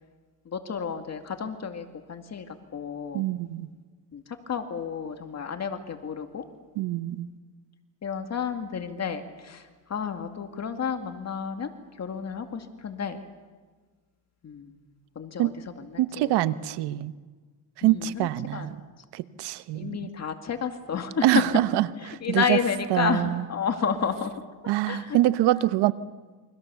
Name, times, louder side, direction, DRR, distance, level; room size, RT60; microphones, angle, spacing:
voice 1, 0.5-3.2 4.1-6.4 8.0-11.7 12.0-13.2 14.4-14.7 15.2-15.5 15.8-16.3 17.8-18.7 19.7-21.4 22.2-24.3 24.8-25.2, left 7 dB, 40° left, 6 dB, 2.3 m, -31 dB
voice 2, 3.1-3.7 6.8-7.3 15.4-15.5 16.0-17.1 17.8-18.8 19.1-20.1 21.2-22.6 22.9-23.4 24.7-25.9, right 15 dB, 75° right, 14 dB, 1.1 m, -25 dB
28.5 x 24.5 x 7.0 m, 1.4 s
cardioid pair, 100°, 41 cm